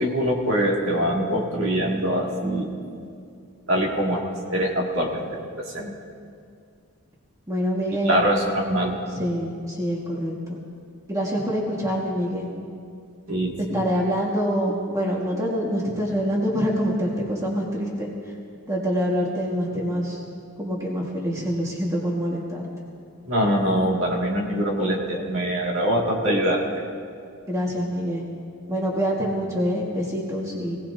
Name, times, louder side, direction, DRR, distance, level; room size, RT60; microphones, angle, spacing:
voice 1, 0.0-2.7 3.7-4.2 4.5-5.9 8.0-9.0 13.3-13.8 23.3-26.6, equal, 60° right, -2 dB, 2.4 m, -23 dB
voice 2, 7.5-8.2 9.1-10.6 11.1-12.5 13.6-18.1 18.7-20.2 20.6-22.6 27.5-28.2 28.7-30.8, equal, 15° right, -4 dB, 1.8 m, -25 dB
24.0 x 18.0 x 2.8 m, 2.3 s
head